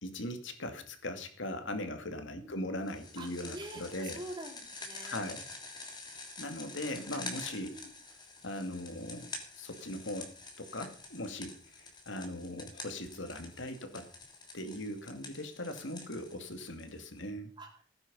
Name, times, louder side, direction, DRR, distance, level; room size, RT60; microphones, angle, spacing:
voice 1, 0.0-4.2 5.0-5.4 6.4-7.7 8.4-9.3 9.6-10.3 10.6-14.1 14.5-17.5, left 1 dB, 70° left, 7 dB, 2.4 m, -39 dB
sound 1, 2.9-17.2, left 3 dB, 20° left, 2.9 m, -47 dB
voice 2, 3.2-5.3 7.7-7.9 17.6-18.0, right 1 dB, 25° right, 1 dB, 3.9 m, -46 dB
17.0 x 9.7 x 5.5 m, 0.44 s
head